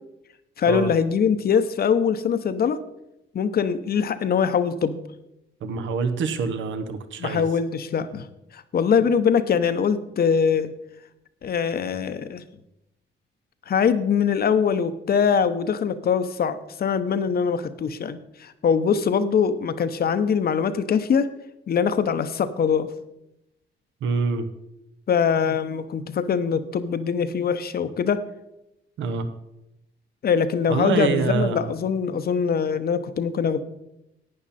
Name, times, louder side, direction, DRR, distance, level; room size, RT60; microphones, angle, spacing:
voice 1, 0.6-2.8 3.3-5.0 7.2-8.3 8.5-10.7 11.4-12.4 13.7-21.3 21.7-22.9 25.1-28.2 30.2-33.6, left 6 dB, 50° left, 11 dB, 0.9 m, -23 dB
voice 2, 5.6-7.4 24.0-24.5 29.0-29.3 30.7-31.7, right 5 dB, 75° right, 9 dB, 1.1 m, -25 dB
11.5 x 8.8 x 4.2 m, 0.87 s
cardioid pair, 90°, 20 cm